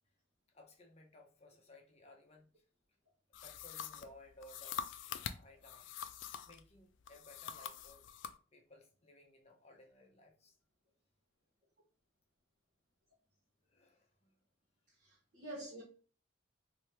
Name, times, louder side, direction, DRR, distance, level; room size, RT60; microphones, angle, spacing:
voice 1, 0.5-2.6 3.4-4.8 5.1-5.9 6.4-8.1 8.5-10.5 13.7-14.4, left 1 dB, 30° left, 0.7 m, -60 dB
sound 1, 3.3-6.6 7.1-8.4, left 8 dB, 65° left, 0.3 m, -45 dB
voice 2, 15.0-15.8, right 1 dB, 40° right, 1.0 m, -47 dB
3.0 x 2.7 x 3.3 m
head